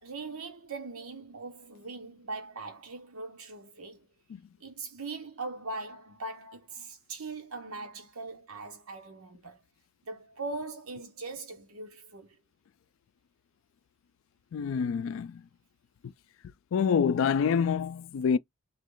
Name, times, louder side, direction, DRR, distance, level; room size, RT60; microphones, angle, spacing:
voice 1, 0.0-4.1 4.6-9.6 10.1-12.4, right 3 dB, 90° right, 0.9 m, -40 dB
voice 2, 14.5-15.4 16.0-16.1 16.7-18.4, left 6 dB, 65° left, 0.3 m, -27 dB
3.0 x 2.3 x 3.8 m
head